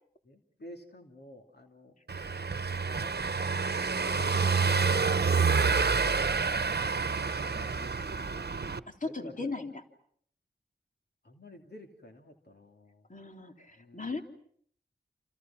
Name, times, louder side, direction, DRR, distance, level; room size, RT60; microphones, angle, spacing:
voice 1, 0.2-2.0 3.0-3.2 4.0-6.5 7.3-8.0 9.0-9.5 11.2-13.1 13.8-14.2, left 1 dB, 65° left, 2 dB, 3.1 m, -49 dB
Car passing by / Engine, 2.1-8.8, right 5 dB, 65° right, 1.0 m, -28 dB
voice 2, 8.9-9.7 13.1-14.2, left 3 dB, 50° left, 3 dB, 3.3 m, -37 dB
29.5 x 28.5 x 6.0 m, 0.64 s
wide cardioid pair, 45°, 18 cm